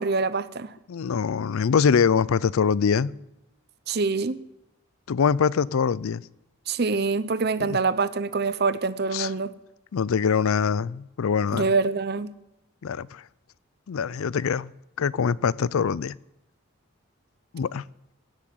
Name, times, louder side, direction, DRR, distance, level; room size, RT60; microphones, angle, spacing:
voice 1, 0.0-0.7 3.9-4.4 6.7-9.5 11.5-12.3, right 4 dB, 50° right, 0.7 m, -25 dB
voice 2, 0.9-3.1 5.1-6.2 7.7-7.8 9.1-9.3 9.9-11.7 12.8-13.2 13.9-14.7 15.0-16.1 17.5-17.8, left 6 dB, 80° left, 0.4 m, -23 dB
16.5 x 7.6 x 9.4 m
head